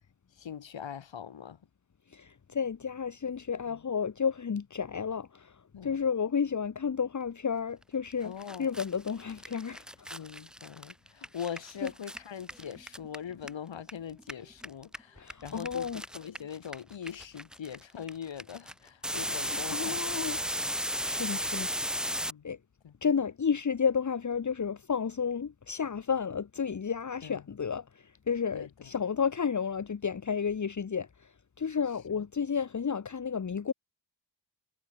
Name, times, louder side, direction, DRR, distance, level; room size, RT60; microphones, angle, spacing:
voice 1, 0.4-1.6 3.7-3.8 5.7-6.0 8.2-8.8 10.1-20.1 22.2-22.5 22.8-22.9 27.2-27.4 28.5-29.0 32.1-32.3, left 8 dB, 70° left, 5.6 m, -42 dB
voice 2, 2.1-8.3 8.6-9.8 11.8-11.9 15.2-16.0 19.3-20.4 21.0-21.7 22.0-22.2 22.4-22.6 23.0-31.3 31.6-33.7, left 6 dB, 40° left, 1.5 m, -32 dB
sound 1, 8.1-8.2 8.4-13.9 14.2-22.3, equal, ahead, 1.1 m, -35 dB
cardioid pair, 80°, 46 cm